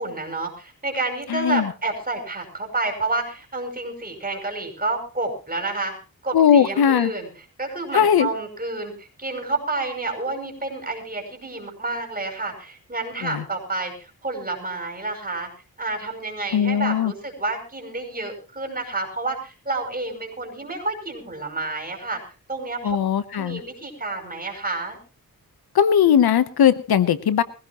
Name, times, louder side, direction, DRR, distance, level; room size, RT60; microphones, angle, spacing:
voice 1, 0.0-5.9 6.2-7.3 7.6-15.5 15.8-22.2 22.5-23.0 23.3-25.0, right 3 dB, 25° right, 3 dB, 5.5 m, -29 dB
voice 2, 1.3-1.7 6.3-7.1 7.9-8.3 13.2-13.4 16.5-17.1 22.8-23.6 25.7-27.4, left 8 dB, 90° left, 14 dB, 1.0 m, -19 dB
22.0 x 16.0 x 3.0 m, 0.33 s
wide cardioid pair, 100°, 36 cm